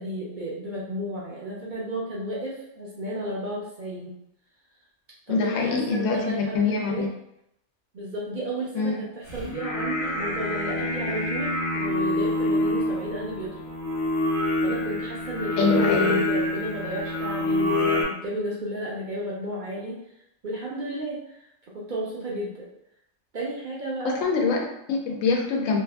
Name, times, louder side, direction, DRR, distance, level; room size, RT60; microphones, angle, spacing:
voice 1, 0.0-4.1 5.3-7.1 7.9-13.6 14.6-20.0 20.4-21.4 21.7-22.7 23.3-24.2, right 1 dB, 55° right, -6 dB, 0.6 m, -33 dB
voice 2, 5.3-7.1 8.7-9.0 15.6-16.2 24.0-25.8, left 4 dB, 80° left, 1 dB, 0.9 m, -24 dB
Singing, 9.3-18.0, left 2 dB, 45° left, 0.8 m, -26 dB
2.7 x 2.4 x 2.2 m, 0.79 s
omnidirectional pair, 1.3 m